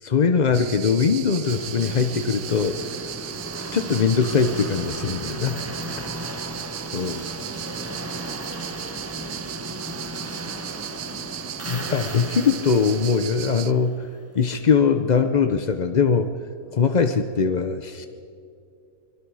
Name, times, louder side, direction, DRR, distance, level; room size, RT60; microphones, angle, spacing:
voice 1, 0.0-2.8 3.7-5.7 6.0-6.1 6.9-7.3 11.7-14.1 14.3-16.4 16.7-18.1, left 5 dB, 55° left, 8 dB, 0.4 m, -21 dB
sound 1, 0.5-13.7, right 11 dB, 65° right, 0.9 m, -36 dB
sound 2, 1.4-14.3, right 1 dB, 10° right, 0.8 m, -36 dB
voice 2, 5.2-6.5 7.3-11.9 16.7-16.8, left 1 dB, 10° left, 1 dB, 2.4 m, -49 dB
26.0 x 22.5 x 4.8 m, 2.6 s
omnidirectional pair, 1.8 m